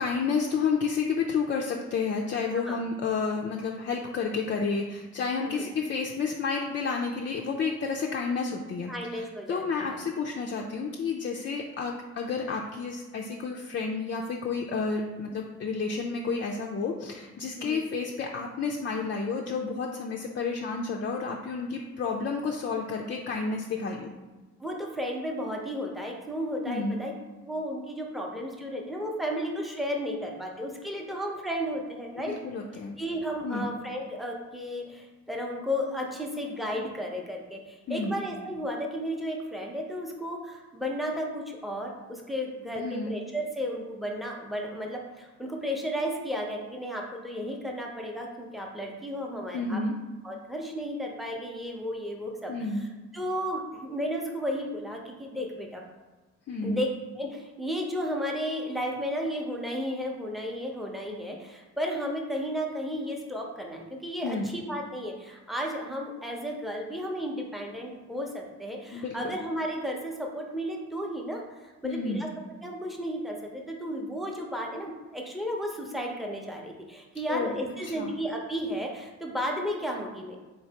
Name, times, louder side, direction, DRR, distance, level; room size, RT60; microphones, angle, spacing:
voice 1, 0.0-24.1 26.7-27.0 32.2-33.0 33.4-33.7 37.9-38.2 42.8-43.1 49.5-49.9 52.5-52.8 56.5-56.8 64.2-64.5 68.9-69.2 71.8-72.3 77.3-77.6 77.8-78.1, left 4 dB, 40° left, 0 dB, 0.4 m, -30 dB
voice 2, 8.9-10.0 17.6-17.8 24.6-27.1 27.4-32.3 33.0-49.8 50.2-52.9 53.1-55.8 56.6-56.9 57.2-72.3 72.6-80.4, equal, ahead, 0 dB, 0.7 m, -33 dB
3.9 x 3.2 x 2.8 m, 1.2 s
cardioid pair, 90°, 30 cm